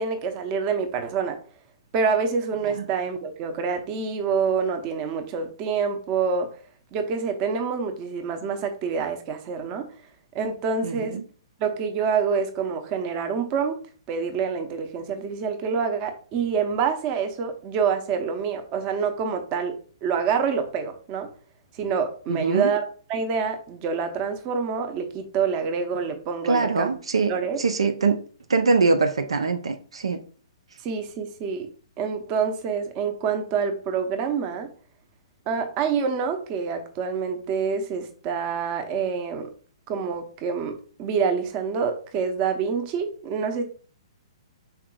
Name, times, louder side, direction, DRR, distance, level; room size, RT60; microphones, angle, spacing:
voice 1, 0.0-1.4 1.9-6.5 6.9-9.9 10.3-11.2 11.6-13.8 14.1-19.8 20.0-21.3 21.7-22.8 23.1-26.9 27.3-27.6 30.8-31.7 32.0-34.7 35.5-39.5 39.9-43.6, right 6 dB, 35° right, 6 dB, 0.8 m, -26 dB
voice 2, 10.8-11.2 22.3-22.7 26.4-27.3 27.6-28.2 28.5-30.2, right 4 dB, 80° right, 6 dB, 0.6 m, -23 dB
5.8 x 3.8 x 2.3 m, 0.41 s
hypercardioid pair, 125°, 3 cm